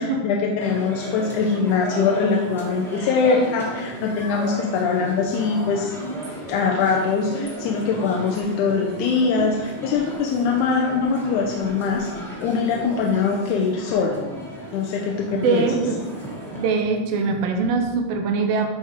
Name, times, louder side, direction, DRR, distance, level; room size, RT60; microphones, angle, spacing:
voice 1, 0.0-5.9 6.5-14.2 14.7-15.7, left 5 dB, 90° left, 0 dB, 2.1 m, -22 dB
sound 1, 0.6-16.7, right 1 dB, ahead, 1.1 m, -35 dB
voice 2, 15.3-16.0 16.5-18.7, right 4 dB, 75° right, 4 dB, 1.6 m, -22 dB
10.0 x 4.4 x 3.6 m, 1.2 s
omnidirectional pair, 3.5 m